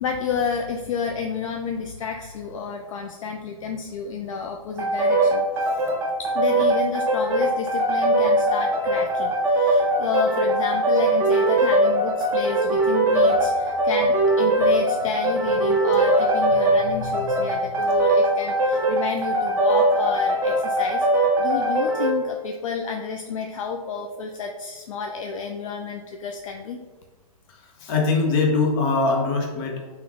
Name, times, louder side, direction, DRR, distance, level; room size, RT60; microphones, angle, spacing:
voice 1, 0.0-5.5 6.2-26.8, left 5 dB, 60° left, 3 dB, 0.4 m, -30 dB
sound 1, 4.8-22.2, right 1 dB, 15° right, 0.4 m, -21 dB
voice 2, 27.5-29.9, left 3 dB, 35° left, 0 dB, 0.9 m, -22 dB
3.4 x 3.0 x 3.5 m, 1.3 s
hypercardioid pair, 140°, 19 cm